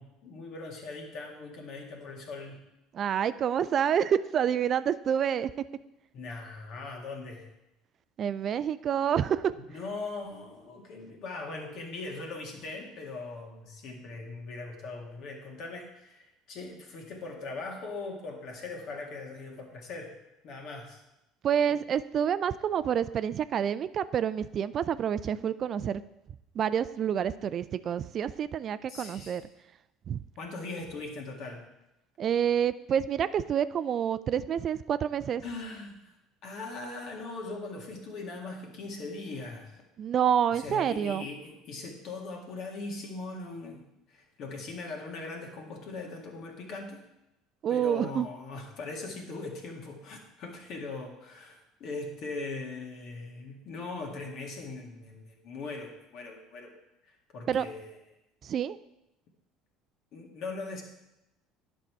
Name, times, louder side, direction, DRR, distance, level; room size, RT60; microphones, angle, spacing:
voice 1, 0.0-2.6 6.1-7.5 9.5-20.2 20.4-21.0 21.7-21.8 28.9-29.4 30.4-31.6 35.4-36.2 36.4-39.8 40.5-47.0 47.7-56.7 57.0-58.0 60.1-60.8, left 3 dB, 55° left, 2 dB, 2.0 m, -40 dB
voice 2, 2.9-5.5 8.2-9.5 21.4-26.0 26.6-29.4 30.1-30.2 32.2-35.4 40.0-41.3 47.6-48.3 57.5-57.7 58.4-58.8, right 8 dB, 45° right, 15 dB, 0.3 m, -28 dB
10.5 x 5.4 x 4.6 m, 0.90 s
hypercardioid pair, 65°, 0 cm